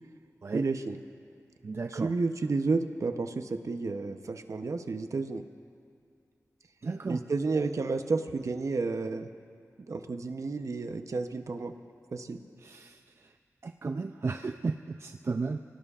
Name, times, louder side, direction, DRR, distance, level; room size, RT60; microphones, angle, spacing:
voice 1, 0.5-1.0 1.9-5.4 7.1-9.3 9.9-11.7 12.1-12.4, right 3 dB, 65° right, 8 dB, 0.8 m, -31 dB
voice 2, 1.6-2.1 6.8-7.2 12.6-13.0 13.6-15.6, right 4 dB, 50° right, 7 dB, 0.4 m, -34 dB
25.5 x 18.0 x 2.5 m, 2.4 s
wide cardioid pair, 70°, 6 cm